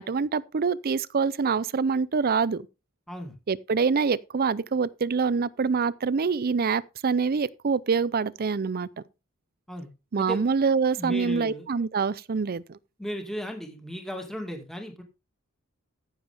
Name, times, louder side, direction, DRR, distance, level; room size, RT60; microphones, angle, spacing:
voice 1, 0.0-2.7 3.5-8.9 10.1-12.8, right 5 dB, 45° right, 0.5 m, -25 dB
voice 2, 11.0-11.7 13.0-15.0, equal, ahead, 2.1 m, -35 dB
14.5 x 7.2 x 3.5 m
head